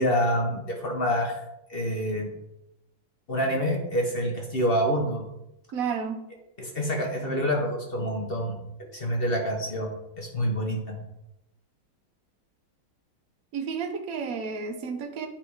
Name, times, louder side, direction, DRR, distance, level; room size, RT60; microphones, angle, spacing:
voice 1, 0.0-1.4 1.7-2.3 3.3-5.2 6.6-8.6 8.9-9.9 10.2-10.9, equal, 50° left, 0 dB, 0.7 m, -27 dB
voice 2, 5.7-6.3 13.5-15.3, right 6 dB, 65° right, 5 dB, 0.8 m, -31 dB
8.8 x 3.3 x 4.7 m, 0.86 s
omnidirectional pair, 2.2 m